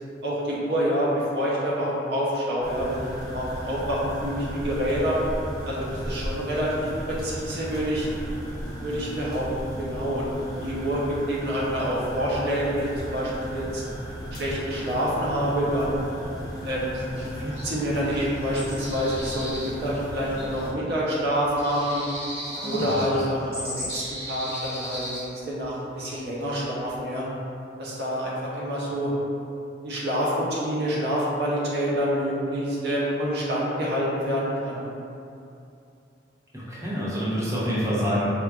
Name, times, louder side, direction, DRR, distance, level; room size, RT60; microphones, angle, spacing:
voice 1, 0.2-5.2 5.7-8.1 8.8-9.5 9.8-10.3 10.6-13.8 14.3-16.0 16.6-22.1 22.6-27.2 27.8-29.1 29.8-34.8, equal, 65° right, -6 dB, 0.6 m, -27 dB
sound 1, 2.6-20.7, equal, 25° left, 0.6 m, -36 dB
sound 2, 17.2-17.3 17.5-17.7 18.0-20.7 21.0-21.1 21.4-25.7 26.0-26.2 26.5-27.0, equal, 35° right, 1.3 m, -36 dB
voice 2, 22.6-23.3 36.5-38.2, equal, 15° right, -9 dB, 0.7 m, -27 dB
4.4 x 2.4 x 2.3 m, 2.6 s
head